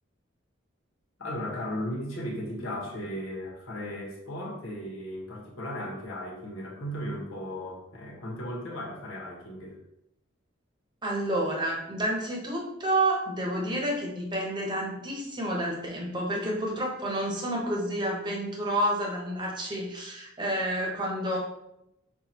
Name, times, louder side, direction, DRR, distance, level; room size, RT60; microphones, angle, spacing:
voice 1, 1.2-9.8, equal, 90° left, -3 dB, 1.3 m, -36 dB
voice 2, 11.0-21.4, right 1 dB, 20° right, -2 dB, 0.9 m, -29 dB
5.8 x 2.4 x 2.9 m, 0.84 s
head